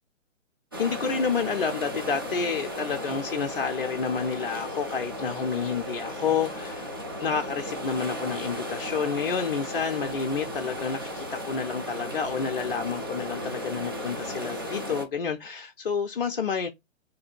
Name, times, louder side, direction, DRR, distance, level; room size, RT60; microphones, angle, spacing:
sound 1, 0.7-15.1, equal, 20° right, 0.4 m, -35 dB
voice 1, 0.8-6.9 7.2-16.7, left 6 dB, 45° left, 0.4 m, -29 dB
4.9 x 2.6 x 2.3 m
figure-of-eight pair, 130°, 39 cm